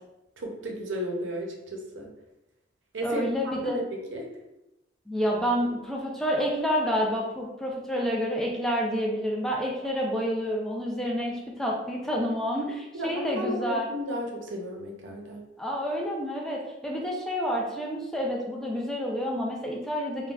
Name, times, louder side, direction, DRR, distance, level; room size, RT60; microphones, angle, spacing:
voice 1, 0.4-2.1 2.9-4.3 12.9-15.5, equal, 90° right, 1 dB, 0.6 m, -34 dB
voice 2, 3.0-3.8 5.1-13.9 15.6-20.3, equal, 5° left, -2 dB, 0.4 m, -29 dB
3.7 x 2.1 x 2.3 m, 0.94 s
head